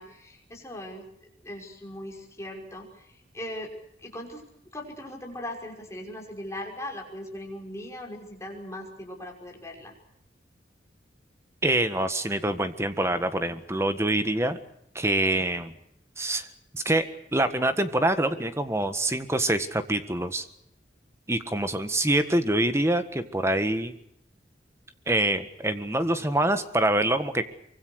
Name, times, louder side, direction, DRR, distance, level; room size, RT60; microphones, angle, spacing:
voice 1, 0.0-3.7 4.0-4.4 4.7-9.9, left 1 dB, 15° left, 0 dB, 5.8 m, -39 dB
voice 2, 11.6-14.6 14.9-15.7 16.2-16.5 16.7-20.4 21.3-23.9 25.1-27.4, right 1 dB, 15° right, 10 dB, 1.6 m, -25 dB
24.5 x 24.5 x 6.5 m, 0.75 s
head